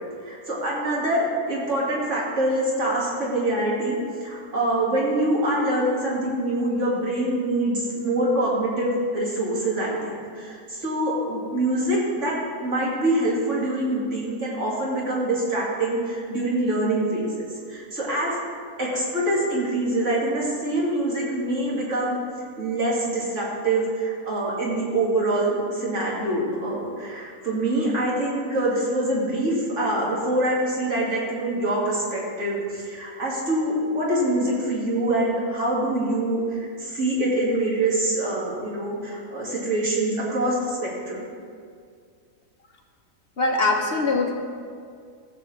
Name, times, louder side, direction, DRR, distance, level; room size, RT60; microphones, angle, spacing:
voice 1, 0.2-18.4 18.8-22.2 22.6-41.2, right 1 dB, 50° right, -5 dB, 2.4 m, -25 dB
voice 2, 43.4-44.3, left 3 dB, 45° left, 2 dB, 1.0 m, -22 dB
14.5 x 7.6 x 3.3 m, 2.2 s
omnidirectional pair, 1.7 m